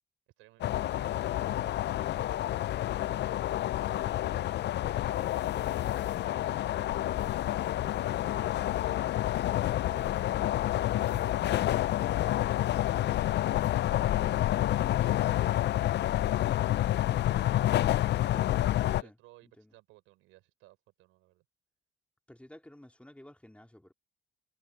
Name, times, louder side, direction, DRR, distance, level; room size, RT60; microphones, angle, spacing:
voice 1, 0.4-4.4 4.9-7.4 8.2-10.1 10.6-11.8 13.2-16.4 18.8-21.4, right 19 dB, 90° right, 5.5 m, -58 dB
sound 1, 0.6-19.0, left 13 dB, 60° left, 0.4 m, -29 dB
voice 2, 19.4-19.7 22.3-23.9, left 1 dB, 5° left, 3.0 m, -53 dB
supercardioid pair, 65°, 21 cm